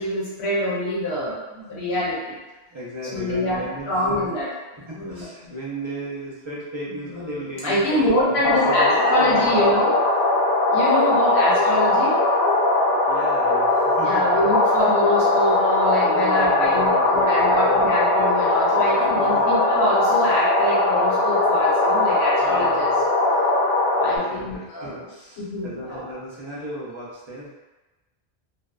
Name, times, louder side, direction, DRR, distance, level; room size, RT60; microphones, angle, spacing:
voice 1, 0.0-1.4 1.7-2.4 3.1-4.5 4.7-5.3 7.1-9.9 10.7-12.2 14.0-22.9 24.0-25.0 25.4-26.0, left 1 dB, 80° left, -7 dB, 1.0 m, -25 dB
voice 2, 1.3-1.8 2.7-4.3 4.9-9.7 13.1-14.4 16.1-18.0 18.7-19.4 22.4-23.0 24.0-27.5, right 1 dB, 35° right, -6 dB, 0.5 m, -36 dB
sound 1, 8.4-24.2, left 2 dB, 60° left, 0.7 m, -20 dB
2.6 x 2.2 x 2.3 m, 1.1 s
omnidirectional pair, 1.1 m